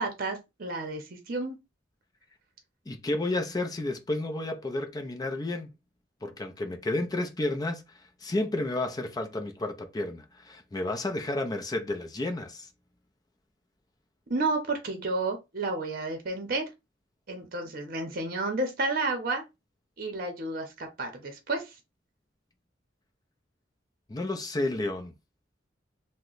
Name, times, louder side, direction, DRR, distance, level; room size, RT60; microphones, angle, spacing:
voice 1, 0.0-1.6 14.3-16.7 17.3-19.4 20.0-21.7, right 2 dB, 50° right, 0.7 m, -31 dB
voice 2, 2.9-5.7 6.2-7.8 8.2-12.7 24.1-25.1, left 2 dB, 20° left, 0.5 m, -31 dB
2.9 x 2.1 x 3.8 m
head